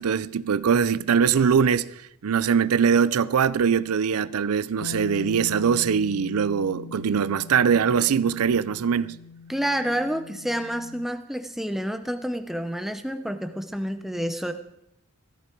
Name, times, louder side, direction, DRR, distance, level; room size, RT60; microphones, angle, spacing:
voice 1, 0.0-1.9 2.2-9.2, right 7 dB, 85° right, 0.5 m, -22 dB
Bass guitar, 4.8-11.1, left 5 dB, 75° left, 0.4 m, -40 dB
voice 2, 9.5-14.5, equal, ahead, 0.7 m, -29 dB
16.0 x 14.0 x 4.5 m
head